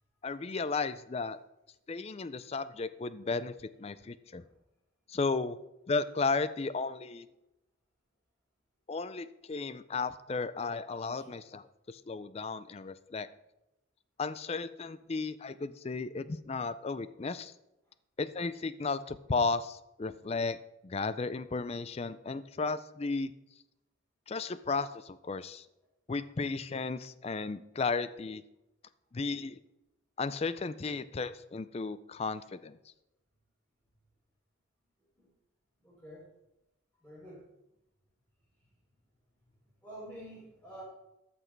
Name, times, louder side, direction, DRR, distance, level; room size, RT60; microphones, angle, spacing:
voice 1, 0.2-1.4 1.9-4.4 5.1-5.6 5.9-7.3 8.9-13.3 14.2-17.5 18.2-20.6 20.8-23.3 24.3-25.7 26.1-28.4 29.1-29.6 30.2-32.8, left 4 dB, 30° left, 15 dB, 0.4 m, -34 dB
voice 2, 35.8-36.3 37.0-37.5 38.6-38.7 39.8-40.8, right 1 dB, 5° left, -8 dB, 4.1 m, -48 dB
13.5 x 6.2 x 4.5 m, 0.91 s
head